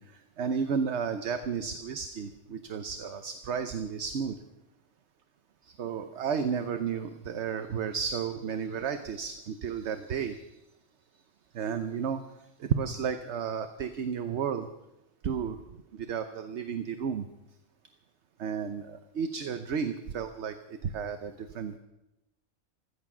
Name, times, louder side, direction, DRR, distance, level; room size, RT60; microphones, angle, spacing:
voice 1, 0.4-4.3 5.8-10.4 11.5-12.2 12.7-14.7 15.2-15.6 16.1-17.3 18.4-20.5 20.9-21.8, right 6 dB, 60° right, 8 dB, 1.0 m, -32 dB
16.0 x 13.5 x 6.1 m, 0.95 s
omnidirectional pair, 1.4 m